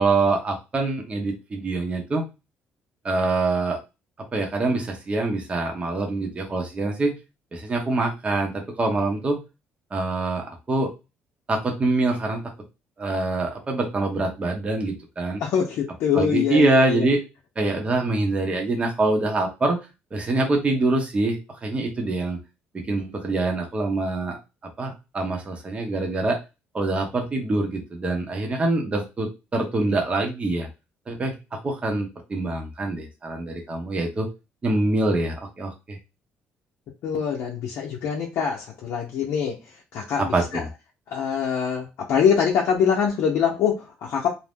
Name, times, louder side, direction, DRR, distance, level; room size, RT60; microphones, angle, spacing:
voice 1, 0.0-2.3 3.0-3.8 4.3-7.1 7.5-9.4 9.9-10.9 11.5-12.4 13.0-15.4 16.1-17.2 17.6-19.8 20.1-22.4 22.7-24.4 24.8-26.4 26.7-30.7 31.1-34.3 34.6-36.0 40.2-40.7, right 2 dB, 25° right, 2 dB, 0.8 m, -25 dB
voice 2, 15.4-17.0 37.0-39.6 39.9-40.2 40.5-40.6 41.1-44.3, left 7 dB, 75° left, -3 dB, 0.6 m, -23 dB
2.6 x 2.1 x 3.4 m, 0.26 s
cardioid pair, 110°, 4 cm